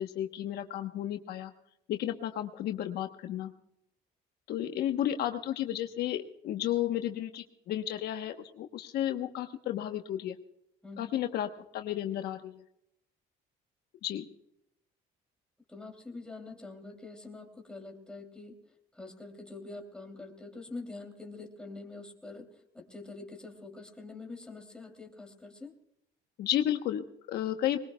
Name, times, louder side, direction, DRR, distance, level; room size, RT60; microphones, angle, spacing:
voice 1, 0.0-1.5 1.9-3.5 4.5-10.4 11.0-12.6 14.0-14.3 26.4-27.8, left 11 dB, 70° left, 6 dB, 1.0 m, -33 dB
voice 2, 10.8-11.2 15.7-18.5 18.9-22.5 22.7-25.7, left 3 dB, 5° left, 3 dB, 2.9 m, -45 dB
21.0 x 20.0 x 2.3 m, 0.78 s
cardioid pair, 110°, 17 cm